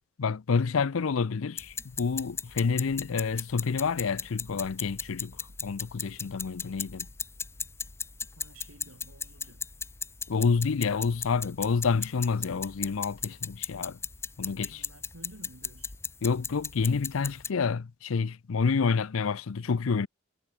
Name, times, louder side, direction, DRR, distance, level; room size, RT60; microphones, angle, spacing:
voice 1, 0.2-5.4 5.6-7.1 10.3-14.0 14.4-14.8 16.2-20.1, left 5 dB, 70° left, 0.5 m, -28 dB
sound 1, 1.6-17.5, left 5 dB, 10° left, 0.6 m, -38 dB
voice 2, 8.4-9.7 14.7-15.9, right 1 dB, 75° right, 6.2 m, -52 dB
head